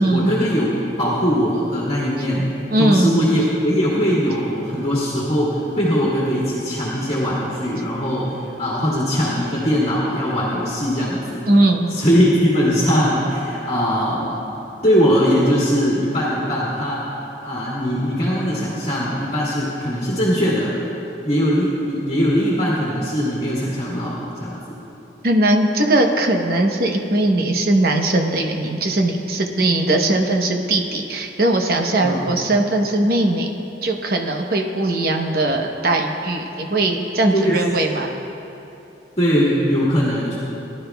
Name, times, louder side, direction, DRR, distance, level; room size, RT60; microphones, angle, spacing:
voice 1, 0.0-2.5 2.8-11.4 11.9-14.4 14.8-17.0 17.4-20.7 21.2-24.6 32.0-32.3 37.3-37.6 39.2-40.4, equal, 35° left, -7 dB, 1.7 m, -20 dB
voice 2, 2.7-3.1 11.5-12.0 25.2-33.5 33.8-38.1, right 1 dB, 55° right, 2 dB, 0.9 m, -19 dB
19.5 x 11.0 x 2.3 m, 2.9 s
head